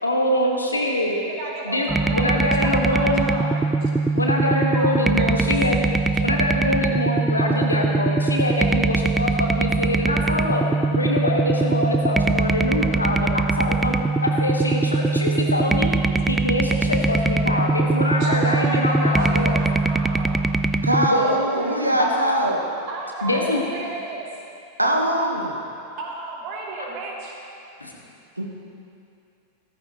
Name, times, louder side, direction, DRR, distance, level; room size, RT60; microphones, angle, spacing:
voice 1, 0.0-1.2 1.6-3.2 4.1-5.8 6.2-10.6 10.9-13.9 14.2-15.9 16.3-19.6 21.0-21.3 22.0-22.1 23.2-23.6 27.8-27.9, left 1 dB, 80° left, 0 dB, 1.5 m, -24 dB
voice 2, 1.4-3.5 4.7-5.6 6.1-6.2 16.7-16.8 18.2-20.4 21.3-22.4 22.9-24.2 26.0-27.3, right 3 dB, 45° right, -3 dB, 2.5 m, -34 dB
sound 1, 1.9-21.1, right 3 dB, 10° right, 0.4 m, -22 dB
voice 3, 20.8-22.6 24.8-25.5 28.4-28.5, right 1 dB, 85° right, 1 dB, 1.2 m, -22 dB
15.0 x 14.0 x 3.0 m, 2.7 s
figure-of-eight pair, 90°, 0 cm